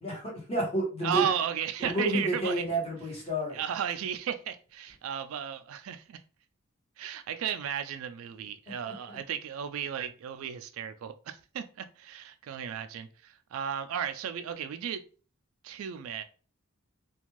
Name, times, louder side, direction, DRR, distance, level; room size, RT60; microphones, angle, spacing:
voice 1, 0.0-1.2 1.8-3.6 9.1-9.2, right 1 dB, 30° left, 1.1 m, -30 dB
voice 2, 1.0-2.6 3.5-6.2 7.0-15.0 15.6-16.2, right 8 dB, 70° right, 0.3 m, -34 dB
2.5 x 2.3 x 3.0 m
head